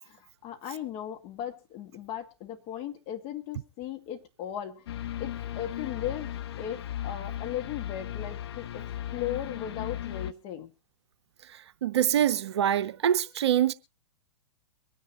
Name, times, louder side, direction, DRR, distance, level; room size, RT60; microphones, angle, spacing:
voice 1, 0.0-4.9 5.2-8.9 9.1-10.7, left 10 dB, 35° left, 1.9 m, -37 dB
sound 1, 4.9-10.3, left 11 dB, 55° left, 0.8 m, -36 dB
voice 2, 11.8-13.7, right 10 dB, 60° right, 0.7 m, -24 dB
23.5 x 10.0 x 3.0 m
figure-of-eight pair, 105°, 16 cm